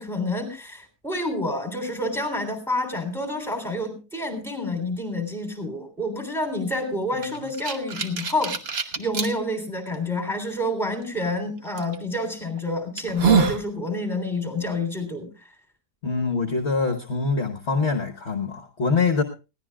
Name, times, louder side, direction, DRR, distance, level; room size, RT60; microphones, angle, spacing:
voice 1, 0.0-15.3, left 1 dB, ahead, 5 dB, 3.3 m, -28 dB
sound 1, 7.2-9.3 9.9-10.0 11.8-12.0 12.5-12.6 13.0-13.6, right 6 dB, 45° right, 1.3 m, -24 dB
voice 2, 16.0-19.2, left 4 dB, 45° left, 5 dB, 1.3 m, -24 dB
21.0 x 16.0 x 2.3 m, 0.31 s
omnidirectional pair, 1.7 m